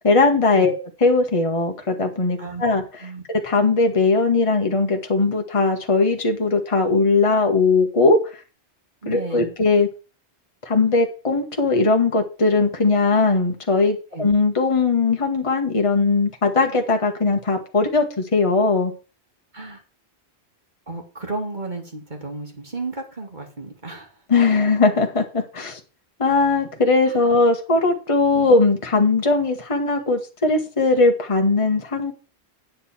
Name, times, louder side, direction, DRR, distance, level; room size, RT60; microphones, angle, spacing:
voice 1, 0.0-0.7 1.0-2.8 3.3-8.2 9.1-9.9 10.7-18.9 24.3-25.8 26.2-32.1, left 3 dB, 30° left, 1.4 m, -19 dB
voice 2, 9.0-9.5 14.1-14.3 19.5-19.8 20.9-24.1 27.1-27.2 28.3-28.5, right 3 dB, 45° right, 2.6 m, -33 dB
9.3 x 8.0 x 4.3 m
omnidirectional pair, 1.1 m